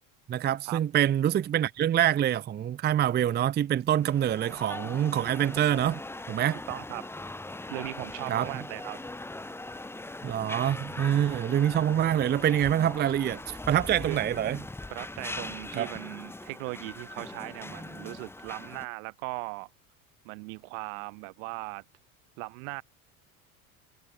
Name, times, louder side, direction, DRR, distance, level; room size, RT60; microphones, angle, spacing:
voice 1, 0.3-6.0 6.3-6.6 8.3-8.5 10.2-14.6 15.8-15.9, right 10 dB, 25° right, 0.6 m, -26 dB
sound 1, 3.9-18.9, left 2 dB, 5° left, 1.0 m, -41 dB
voice 2, 6.7-7.0 7.7-9.0 14.1-14.2 14.9-19.7 20.2-21.8 22.4-22.8, right 35 dB, 70° right, 1.7 m, -38 dB
hypercardioid pair, 85°, 42 cm